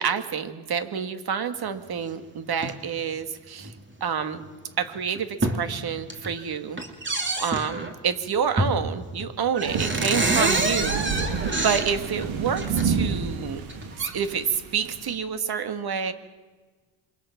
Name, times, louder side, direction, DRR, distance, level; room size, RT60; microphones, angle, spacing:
voice 1, 0.0-3.7 4.0-4.4 4.8-6.8 7.3-11.0 11.5-13.6 14.0-16.1, right 7 dB, 50° right, 9 dB, 2.1 m, -28 dB
sound 1, 2.5-2.8 3.6-3.8 4.4-4.5 5.0-5.6 6.0-6.4 6.8-7.9 8.6-8.9 9.2-9.3 9.5-12.8 13.6-14.1, right 2 dB, 25° right, 2.9 m, -27 dB
sound 2, 9.7-15.1, right 5 dB, 80° right, 3.3 m, -29 dB
27.5 x 23.0 x 6.0 m, 1.3 s
cardioid pair, 100°, 48 cm